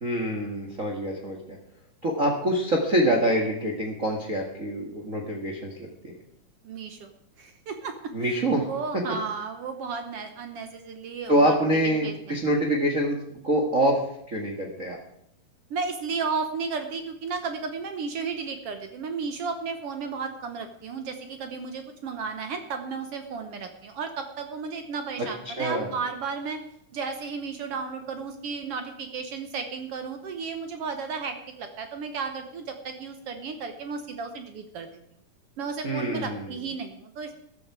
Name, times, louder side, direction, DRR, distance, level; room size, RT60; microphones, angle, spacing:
voice 1, 0.0-1.4 2.0-5.7 8.1-8.7 11.3-13.2 13.4-14.0 14.3-15.0 25.4-25.9 35.8-36.5, right 1 dB, 35° right, 1 dB, 1.4 m, -25 dB
voice 2, 6.6-7.1 7.4-8.4 8.6-11.5 11.9-12.3 15.7-26.6 26.9-34.9 35.6-37.3, right 5 dB, 65° right, 7 dB, 1.5 m, -34 dB
14.0 x 12.5 x 4.8 m, 0.72 s
omnidirectional pair, 3.8 m